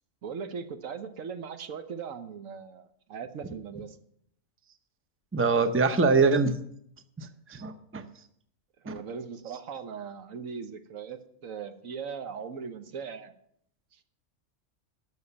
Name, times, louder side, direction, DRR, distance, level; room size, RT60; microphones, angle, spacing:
voice 1, 0.2-2.8 3.1-3.9 8.8-11.2 11.4-13.3, right 6 dB, 85° right, 9 dB, 1.4 m, -39 dB
voice 2, 5.3-6.6 7.2-8.0 8.9-9.0, right 4 dB, 15° right, 9 dB, 0.6 m, -24 dB
12.5 x 6.5 x 6.9 m, 0.70 s
omnidirectional pair, 1.4 m